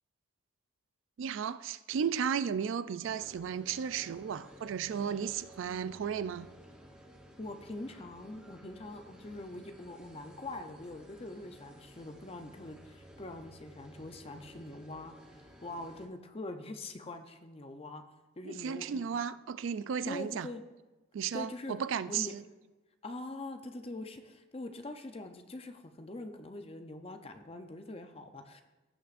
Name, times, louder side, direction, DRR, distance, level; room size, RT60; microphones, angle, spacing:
voice 1, 1.2-6.5 18.4-20.5 21.1-22.4, right 7 dB, 75° right, 0.3 m, -34 dB
sound 1, 3.0-16.1, equal, 5° right, 0.9 m, -55 dB
voice 2, 7.4-18.0 18.4-19.1 20.1-20.6 21.3-21.8 22.1-22.3 23.0-28.6, left 2 dB, 30° left, 0.6 m, -43 dB
17.0 x 6.0 x 2.5 m
head